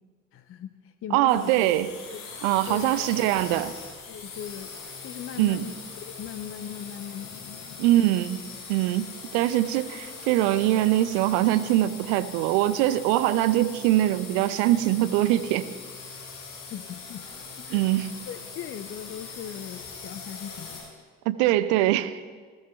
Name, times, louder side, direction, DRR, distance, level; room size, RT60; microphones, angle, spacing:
voice 1, 0.3-1.7 2.1-2.3 2.7-3.0 4.1-7.9 16.7-17.3 17.6-17.9 18.3-20.9, left 9 dB, 35° left, 11 dB, 0.7 m, -39 dB
voice 2, 1.1-1.9 2.4-3.7 5.4-5.6 7.8-8.4 8.7-15.7 17.7-18.1 21.3-22.2, right 14 dB, 60° right, 14 dB, 0.7 m, -23 dB
sound 1, 1.3-20.8, left 4 dB, 60° left, 4.9 m, -41 dB
20.0 x 14.0 x 3.4 m, 1.5 s
figure-of-eight pair, 50°, 37 cm